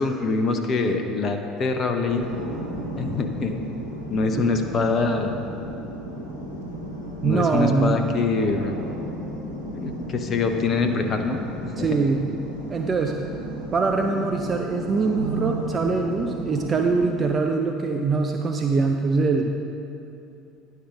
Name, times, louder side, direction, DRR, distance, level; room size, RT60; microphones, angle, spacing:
voice 1, 0.0-2.2 3.0-3.6 4.1-5.3 7.2-8.8 9.7-11.4 11.8-11.9, left 3 dB, 40° left, 6 dB, 0.7 m, -24 dB
sound 1, 2.1-17.1, right 1 dB, 90° left, 1.1 m, -34 dB
voice 2, 7.2-8.1 11.8-12.3 12.7-13.2 13.7-19.5, right 4 dB, 30° right, 4 dB, 0.5 m, -23 dB
10.0 x 5.5 x 5.0 m, 2.7 s
figure-of-eight pair, 65°, 0 cm